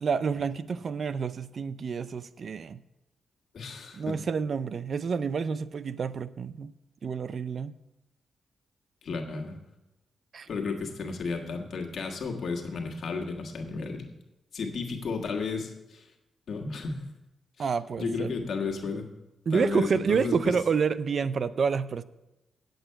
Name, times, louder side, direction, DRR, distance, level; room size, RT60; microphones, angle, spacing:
voice 1, 0.0-2.8 3.9-6.7 7.0-7.7 10.3-10.5 17.6-18.3 19.5-22.0, right 6 dB, 60° right, 16 dB, 0.4 m, -28 dB
voice 2, 3.5-4.2 9.0-9.6 10.5-14.1 14.5-16.0 16.5-17.0 17.6-17.7 18.0-19.1 19.5-20.5, left 4 dB, 65° left, 2 dB, 1.5 m, -33 dB
8.9 x 7.9 x 5.6 m, 0.96 s
cardioid pair, 75°, 0 cm